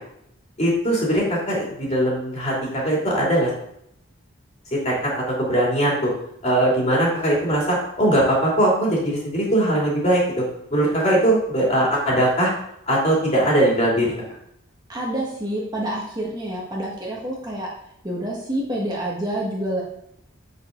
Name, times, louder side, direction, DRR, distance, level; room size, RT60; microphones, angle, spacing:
voice 1, 0.6-3.5 4.8-6.1 6.4-10.2 10.7-12.5 12.9-14.1, right 1 dB, 35° left, -4 dB, 2.8 m, -20 dB
voice 2, 14.9-17.7 18.0-19.8, right 1 dB, 20° right, -4 dB, 1.6 m, -27 dB
7.7 x 6.5 x 3.9 m, 0.75 s
head